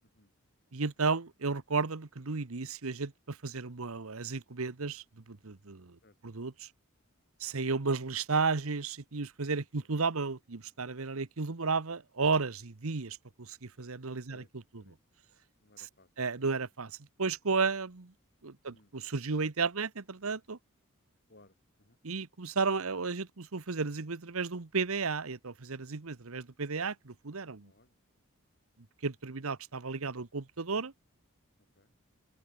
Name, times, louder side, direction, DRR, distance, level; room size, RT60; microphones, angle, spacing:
voice 1, 0.7-6.0 6.2-6.7 7.4-14.4 16.2-16.9 17.2-18.1 18.4-20.6 22.0-27.7 29.0-30.9, right 4 dB, 75° right, 1.1 m, -33 dB
voice 2, 14.3-15.0 15.6-16.4 18.7-19.0 21.3-22.0 27.6-28.0 31.8-31.9, left 2 dB, 50° left, 5.5 m, -63 dB
open air
head